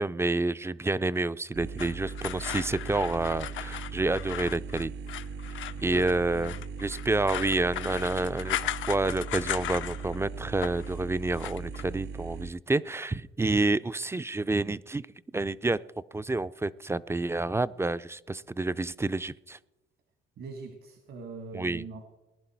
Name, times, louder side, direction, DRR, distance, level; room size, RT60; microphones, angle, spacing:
voice 1, 0.0-4.9 5.8-6.5 6.8-15.1 15.3-15.8 16.1-19.6 21.5-21.8, right 2 dB, 15° right, 16 dB, 0.4 m, -29 dB
sound 1, 1.5-12.5, right 5 dB, 55° right, 0.6 m, -39 dB
sound 2, 1.8-10.2 10.4-10.9 11.3-11.8, left 12 dB, 75° left, 0.6 m, -37 dB
voice 2, 20.4-22.1, right 4 dB, 75° right, 5 dB, 1.9 m, -42 dB
19.5 x 10.5 x 4.5 m, 1.0 s
cardioid pair, 90°, 20 cm